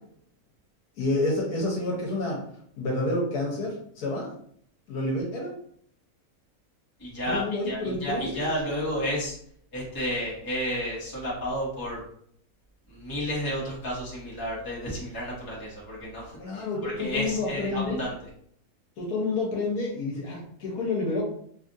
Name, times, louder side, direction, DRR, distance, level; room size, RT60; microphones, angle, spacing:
voice 1, 1.0-2.4 2.8-4.3 4.9-5.5 7.3-8.4 16.4-18.0 19.0-21.2, left 2 dB, 80° left, -2 dB, 1.4 m, -29 dB
voice 2, 7.0-9.3 9.7-12.0 12.9-18.3, equal, 15° left, -7 dB, 1.0 m, -32 dB
3.3 x 2.4 x 2.6 m, 0.63 s
omnidirectional pair, 1.6 m